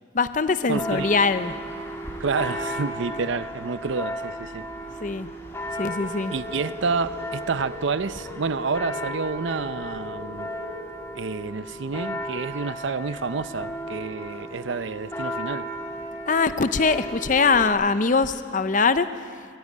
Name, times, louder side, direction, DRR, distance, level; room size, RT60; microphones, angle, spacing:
voice 1, 0.1-1.5 5.0-5.3 5.8-6.3 16.3-19.1, left 4 dB, 40° left, 12 dB, 0.6 m, -22 dB
Church bell, 0.7-17.7, equal, 15° left, 2.4 m, -35 dB
voice 2, 0.7-1.1 2.2-4.6 6.3-10.5 11.1-15.7, right 4 dB, 70° right, 14 dB, 0.6 m, -29 dB
sound 1, 5.9-10.9, left 3 dB, 90° right, 4.7 m, -40 dB
22.0 x 15.0 x 8.5 m, 2.2 s
head